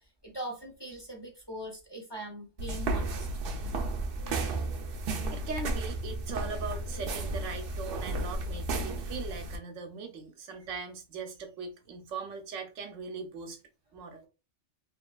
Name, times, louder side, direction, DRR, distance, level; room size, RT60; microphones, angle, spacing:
voice 1, 0.0-3.3, right 1 dB, 30° left, 0.5 m, -41 dB
sound 1, 2.6-9.6, right 2 dB, 60° right, 0.6 m, -33 dB
voice 2, 5.3-13.6 13.9-14.3, right 5 dB, 85° right, 1.0 m, -40 dB
2.9 x 2.4 x 2.2 m
omnidirectional pair, 1.3 m